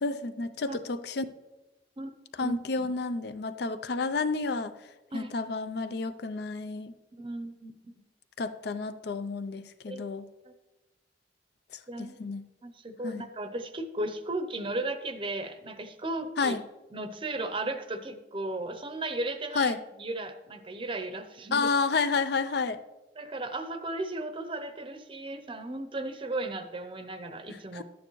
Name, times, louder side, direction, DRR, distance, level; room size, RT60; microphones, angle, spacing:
voice 1, 0.0-1.2 2.4-4.7 5.1-6.9 8.4-10.3 12.0-12.4 13.0-13.2 16.4-16.6 19.6-19.8 21.5-22.8 27.7-27.8, left 4 dB, 65° left, 13 dB, 0.5 m, -30 dB
voice 2, 2.0-2.6 5.1-5.3 7.2-7.7 9.9-10.0 10.4-10.5 11.9-12.2 12.6-16.5 16.9-19.7 20.0-21.7 23.2-27.8, right 2 dB, 30° right, 9 dB, 0.7 m, -35 dB
11.5 x 9.2 x 3.1 m, 1.1 s
head